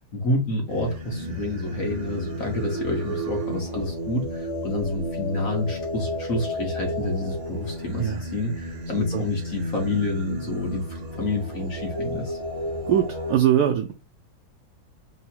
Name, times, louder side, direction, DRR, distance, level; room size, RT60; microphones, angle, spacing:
voice 1, 0.1-12.4, left 2 dB, 45° left, 1.4 m, -28 dB
Singing, 0.7-13.3, equal, 40° right, 1.4 m, -32 dB
voice 2, 12.9-13.9, right 10 dB, 85° right, 0.8 m, -21 dB
3.8 x 2.8 x 4.4 m
omnidirectional pair, 2.3 m